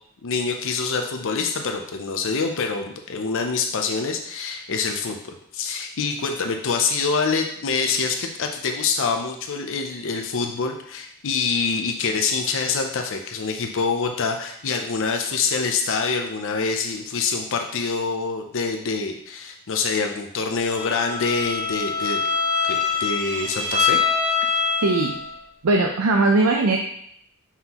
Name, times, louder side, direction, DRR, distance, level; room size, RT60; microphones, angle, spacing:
voice 1, 0.2-22.2 22.6-24.0, left 4 dB, 60° left, 4 dB, 0.6 m, -25 dB
Bowed string instrument, 20.7-25.3, left 5 dB, 30° right, 1.3 m, -24 dB
voice 2, 24.8-25.2 25.6-26.8, right 2 dB, 70° right, 1 dB, 0.6 m, -19 dB
5.7 x 5.7 x 2.9 m, 0.67 s
head